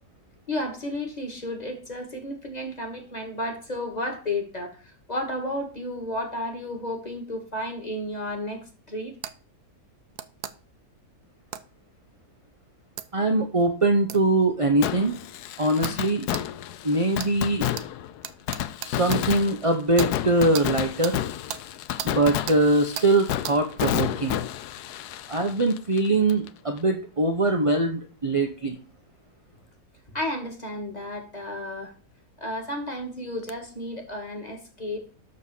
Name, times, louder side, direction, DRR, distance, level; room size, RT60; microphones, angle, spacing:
voice 1, 0.5-4.8 5.1-9.1 30.1-31.9 32.4-35.0, left 1 dB, 25° left, 2 dB, 2.5 m, -32 dB
sound 1, 9.2-9.4 10.2-10.5 11.5-11.7 13.0-13.1 14.1-14.2 14.9-15.0 15.8-16.0 16.3-16.5 17.2-17.3 17.8-17.9 18.2-19.2 20.0-20.1 20.5-20.7 21.0-21.2 21.5-21.6 22.0-22.1 22.5-22.6 23.0-23.1 23.4-23.6, right 10 dB, 75° right, 1.2 m, -35 dB
voice 2, 13.1-15.1 15.6-16.3 16.8-17.7 18.8-21.2 22.0-24.4 25.3-28.7, right 2 dB, 25° right, 4 dB, 0.8 m, -22 dB
Fireworks, 14.8-26.5 26.8-26.9 33.5-33.6, left 12 dB, 80° left, 1.2 m, -31 dB
12.0 x 4.1 x 6.9 m, 0.36 s
omnidirectional pair, 1.7 m